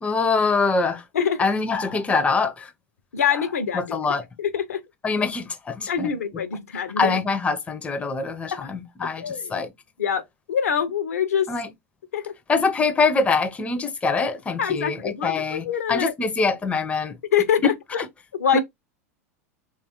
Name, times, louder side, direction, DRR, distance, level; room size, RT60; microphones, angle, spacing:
voice 1, 0.0-1.0 1.4-2.7 3.3-3.5 3.7-4.2 5.0-6.1 7.0-9.7 11.5-11.7 12.5-17.2 17.6-18.1 18.5-18.6, left 4 dB, 15° left, 0.4 m, -24 dB
voice 2, 1.1-1.4 3.1-4.0 4.4-4.8 5.9-7.2 8.5-8.7 9.2-9.6 10.0-11.5 12.1-12.3 14.6-16.1 17.3-17.7 18.3-18.6, left 8 dB, 75° left, 0.5 m, -24 dB
3.1 x 2.3 x 2.8 m
hypercardioid pair, 90°, 8 cm